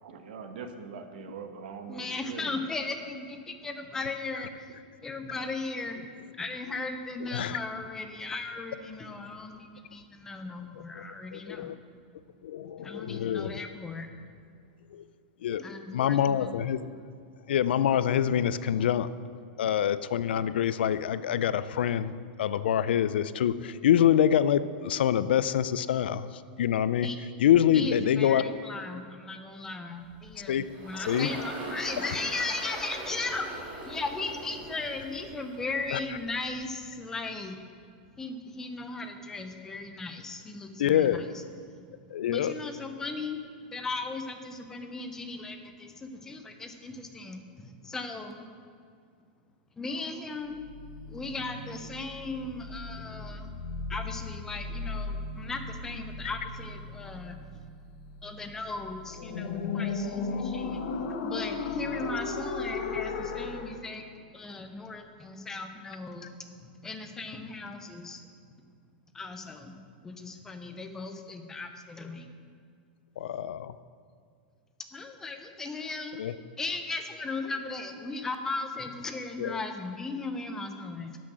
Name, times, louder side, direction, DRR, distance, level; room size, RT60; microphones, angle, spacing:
voice 1, 0.0-2.5, right 5 dB, 65° right, 7 dB, 1.1 m, -42 dB
voice 2, 1.9-4.7 5.0-6.0 6.4-11.8 12.8-14.1 15.6-16.6 27.0-27.2 27.7-33.5 33.8-37.6 38.2-41.2 42.3-43.4 43.7-48.4 49.8-50.6 51.1-53.5 53.9-57.4 58.2-68.2 69.1-69.8 70.0-72.3 74.9-76.2 76.6-81.2, left 3 dB, 10° left, 6 dB, 0.6 m, -37 dB
voice 3, 11.3-11.8 12.4-13.6 14.9-15.0 15.4-15.7 15.9-16.9 17.5-19.1 19.6-22.1 22.4-27.1 27.4-28.4 30.5-30.7 31.0-31.3 35.9-36.0 40.8-41.2 42.1-42.5 73.2-73.7 76.2-76.3 79.4-79.6, left 10 dB, 85° left, 15 dB, 0.4 m, -26 dB
Engine, 30.0-36.6, right 2 dB, 25° right, 2.0 m, -41 dB
sound 1, 50.5-63.8, left 4 dB, 55° left, 1.0 m, -36 dB
12.0 x 6.2 x 6.2 m, 2.2 s
supercardioid pair, 170°, 5 cm